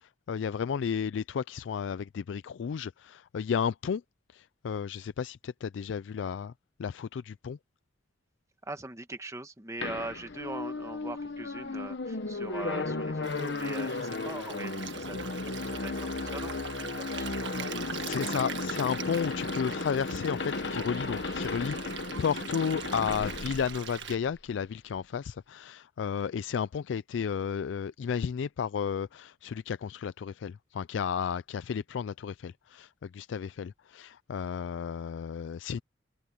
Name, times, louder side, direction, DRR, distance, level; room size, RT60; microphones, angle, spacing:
voice 1, 0.0-4.0 4.3-6.5 6.8-7.6 15.6-15.8 17.9-35.8, left 7 dB, 85° left, 0.4 m, -33 dB
voice 2, 8.6-17.8, right 2 dB, 15° right, 1.3 m, -42 dB
sound 1, 9.8-24.5, left 3 dB, 65° left, 1.0 m, -35 dB
Stream, 13.2-24.2, right 7 dB, 75° right, 1.7 m, -42 dB
open air
head